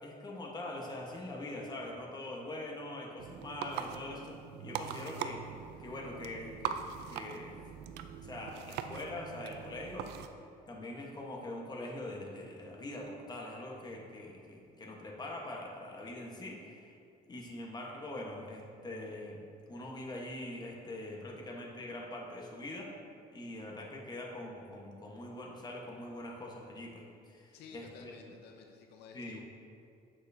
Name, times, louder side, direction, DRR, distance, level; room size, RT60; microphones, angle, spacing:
voice 1, 0.0-5.4 5.8-6.8 7.1-7.6 8.2-10.4 10.7-17.0 17.3-22.9 23.3-28.1 29.1-29.4, left 1 dB, 25° left, -1 dB, 1.2 m, -43 dB
sound 1, 3.2-10.3, right 8 dB, 80° right, 0.4 m, -42 dB
voice 2, 27.5-29.4, left 5 dB, 80° left, 3 dB, 0.6 m, -53 dB
7.7 x 6.4 x 2.7 m, 2.6 s
cardioid pair, 110°, 17 cm